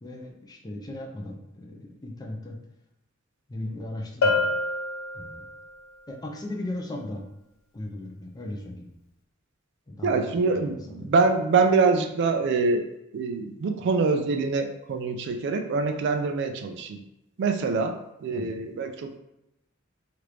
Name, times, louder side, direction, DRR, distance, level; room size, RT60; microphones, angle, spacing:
voice 1, 0.0-2.6 3.5-4.5 5.1-5.4 6.1-7.2 7.7-8.9 9.9-11.2 18.3-18.5, left 1 dB, 20° left, 0 dB, 0.4 m, -37 dB
Bell, 4.2-5.8, left 3 dB, 70° left, 0.5 m, -26 dB
voice 2, 10.0-17.0 17.4-19.2, right 4 dB, 55° right, 6 dB, 0.3 m, -25 dB
3.0 x 2.5 x 3.3 m, 0.88 s
head